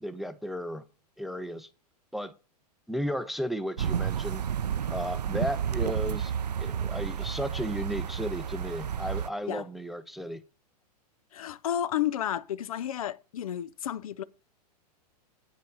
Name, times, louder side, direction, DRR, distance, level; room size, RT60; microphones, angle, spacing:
voice 1, 0.0-0.9 1.2-1.7 2.1-2.3 2.9-4.5 4.9-6.3 6.6-10.4, equal, ahead, 0.5 m, -34 dB
sound 1, 3.8-9.3, right 8 dB, 75° right, 0.4 m, -31 dB
voice 2, 11.3-14.2, left 11 dB, 55° left, 0.5 m, -32 dB
9.0 x 5.3 x 7.7 m
figure-of-eight pair, 100°, 21 cm